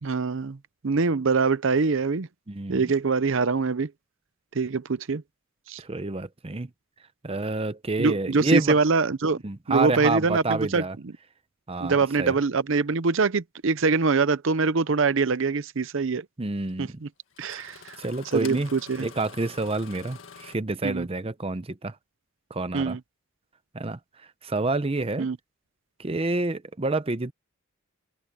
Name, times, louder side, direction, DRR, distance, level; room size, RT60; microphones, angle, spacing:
voice 1, 0.0-0.6 0.8-2.3 2.7-3.9 4.5-5.2 5.7-5.8 8.0-9.4 9.7-10.8 11.8-16.3 16.8-17.1 17.4-18.0 18.3-19.1 20.8-21.1 22.7-23.0 25.2-25.4, right 4 dB, 60° right, 0.6 m, -24 dB
voice 2, 2.5-2.8 5.8-6.7 7.2-8.8 9.4-10.9 11.7-12.3 16.4-17.0 17.5-17.7 18.0-18.7 19.0-22.0 22.5-23.0 23.7-24.0 24.4-25.3 26.0-27.3, right 2 dB, 25° right, 0.7 m, -28 dB
Engine starting, 15.0-15.1 16.7-16.8 17.3-20.6, left 6 dB, 65° left, 1.9 m, -46 dB
open air
head